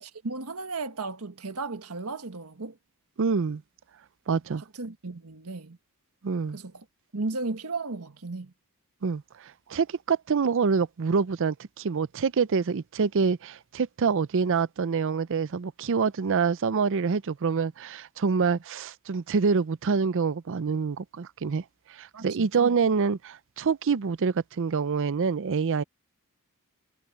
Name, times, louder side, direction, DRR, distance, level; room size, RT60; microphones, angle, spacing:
voice 1, 0.0-2.8 4.3-4.4 4.7-5.8 6.5-6.8 7.1-8.5 18.5-18.6 22.1-22.7, right 3 dB, 80° right, 1.5 m, -35 dB
voice 2, 3.2-3.6 4.3-4.6 6.2-6.6 9.0-9.2 9.7-21.6 22.0-25.8, right 5 dB, 60° right, 0.5 m, -26 dB
head